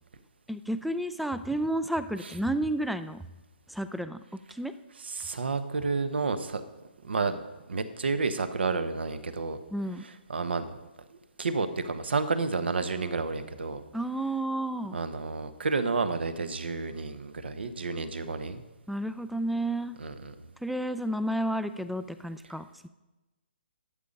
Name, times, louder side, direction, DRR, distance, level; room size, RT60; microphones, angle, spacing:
voice 1, 0.5-3.2 3.7-4.2 4.5-4.7 9.7-10.0 13.9-15.0 18.9-20.0 20.6-22.9, right 1 dB, ahead, 12 dB, 0.3 m, -31 dB
voice 2, 5.0-6.6 7.0-7.4 7.7-9.6 10.0-10.6 11.1-13.8 14.9-18.6 20.0-20.3, right 4 dB, 70° right, 11 dB, 1.1 m, -30 dB
12.5 x 7.4 x 5.2 m, 1.1 s
hypercardioid pair, 145°, 6 cm